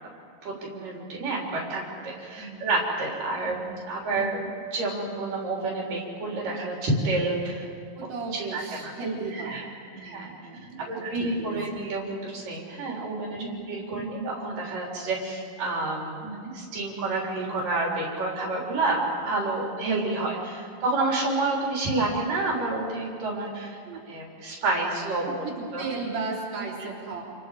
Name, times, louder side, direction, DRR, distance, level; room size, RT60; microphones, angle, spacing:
voice 1, 0.4-3.6 3.9-4.4 4.7-7.7 8.3-8.9 9.3-9.6 10.0-10.3 10.9-16.2 16.5-25.5 25.7-25.9, right 2 dB, 70° right, -2 dB, 5.0 m, -29 dB
voice 2, 2.4-2.7 3.5-3.8 4.1-4.5 7.9-9.6 9.9-11.6 13.4-13.7 13.9-14.3 16.2-16.6 20.2-20.3 23.8-24.0 25.3-27.2, right 4 dB, 50° right, -4 dB, 4.7 m, -36 dB
29.0 x 29.0 x 4.9 m, 2.3 s
omnidirectional pair, 4.0 m